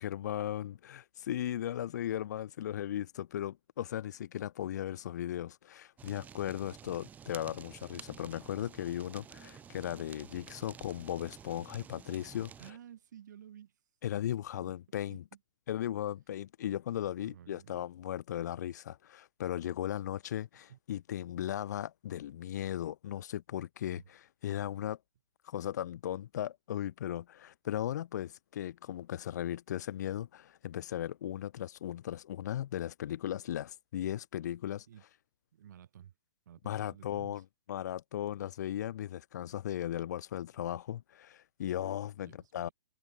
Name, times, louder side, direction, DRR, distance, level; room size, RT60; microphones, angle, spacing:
voice 1, 0.0-12.5 14.0-15.2 15.7-25.0 25.4-34.8 36.6-37.4 37.7-42.7, left 11 dB, 55° left, 1.7 m, -37 dB
Fire, 6.0-12.7, right 8 dB, 15° right, 3.1 m, -51 dB
voice 2, 12.6-13.8 14.5-14.7 15.1-15.4 17.2-17.9 20.7-20.8 23.9-24.1 34.9-35.0 35.5-36.1 36.5-37.4 42.3-42.7, right 10 dB, 60° right, 7.2 m, -53 dB
hypercardioid pair, 135°, 11 cm